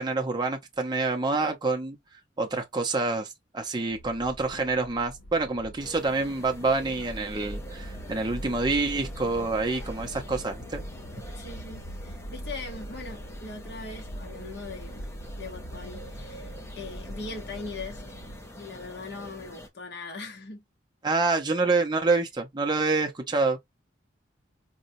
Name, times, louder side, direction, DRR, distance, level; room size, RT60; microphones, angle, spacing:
voice 1, 0.0-2.0 2.4-10.8 21.0-23.6, right 3 dB, 20° right, 0.6 m, -27 dB
sound 1, 3.9-18.4, equal, 85° left, 0.9 m, -42 dB
sound 2, 5.8-19.7, equal, 15° left, 0.6 m, -46 dB
voice 2, 11.3-15.1 15.4-18.0 18.6-20.6, left 3 dB, 55° left, 0.9 m, -40 dB
4.0 x 2.2 x 2.6 m
head